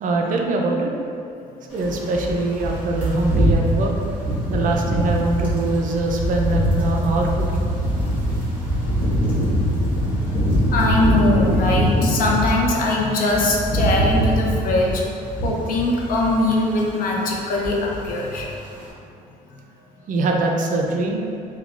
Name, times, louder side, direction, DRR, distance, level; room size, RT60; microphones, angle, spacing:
voice 1, 0.0-0.9 1.7-3.9 4.5-7.7 20.1-21.2, right 2 dB, 50° right, 1 dB, 0.4 m, -22 dB
sound 1, 1.8-12.7 13.1-16.5 16.7-17.0 17.3-18.1 18.4-18.6, equal, 10° right, 1.1 m, -22 dB
voice 2, 10.7-15.0 15.4-18.5, left 2 dB, 55° left, -2 dB, 0.6 m, -21 dB
3.6 x 2.3 x 2.3 m, 2.5 s
cardioid pair, 110°, 17 cm